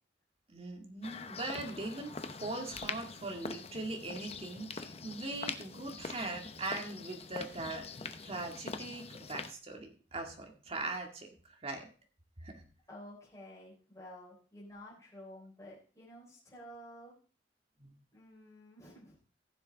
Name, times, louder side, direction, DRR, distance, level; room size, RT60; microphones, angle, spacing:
voice 1, 0.5-7.9 8.2-11.9 12.4-12.6 17.8-17.9, right 2 dB, 35° right, 3 dB, 2.1 m, -41 dB
sound 1, 1.0-9.5, left 4 dB, 35° left, 0.8 m, -44 dB
voice 2, 12.9-17.1 18.1-19.2, equal, 20° left, -7 dB, 4.0 m, -51 dB
15.0 x 7.2 x 3.5 m, 0.38 s
head